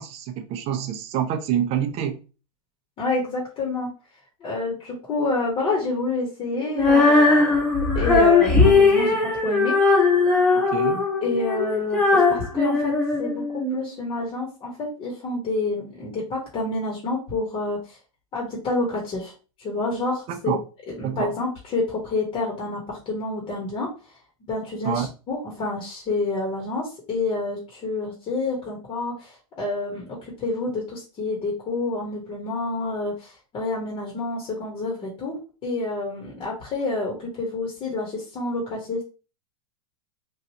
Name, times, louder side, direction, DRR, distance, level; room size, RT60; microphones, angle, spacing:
voice 1, 0.0-2.2 10.5-11.1 20.3-20.6 21.0-21.4 24.8-25.1, right 9 dB, 35° right, 0.5 m, -27 dB
voice 2, 3.0-3.9 4.4-7.5 7.9-9.2 9.4-9.7 11.2-12.9 13.2-13.4 13.7-18.0 18.3-19.3 19.6-20.6 20.9-23.9 24.5-39.0, left 2 dB, 30° left, 1.1 m, -28 dB
Female singing, 6.7-13.8, left 3 dB, 5° left, 1.1 m, -19 dB
3.1 x 2.5 x 2.8 m
hypercardioid pair, 130°, 18 cm